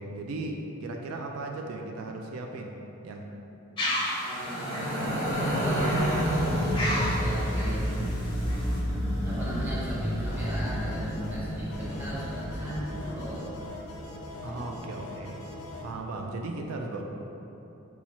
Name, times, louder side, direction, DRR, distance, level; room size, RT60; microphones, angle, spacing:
voice 1, 0.0-2.8 3.0-3.3 14.4-15.4 15.8-17.0, right 2 dB, 85° right, 2 dB, 0.3 m, -36 dB
sound 1, 3.8-8.8, equal, 25° left, 0.5 m, -34 dB
voice 2, 4.2-7.9 9.2-13.7 14.4-14.9, equal, 10° right, -10 dB, 0.8 m, -39 dB
sound 2, 4.3-13.6, equal, 45° right, 0.8 m, -29 dB
sound 3, 10.3-15.9, left 2 dB, 75° left, 0.4 m, -42 dB
2.9 x 2.4 x 4.1 m, 2.9 s
head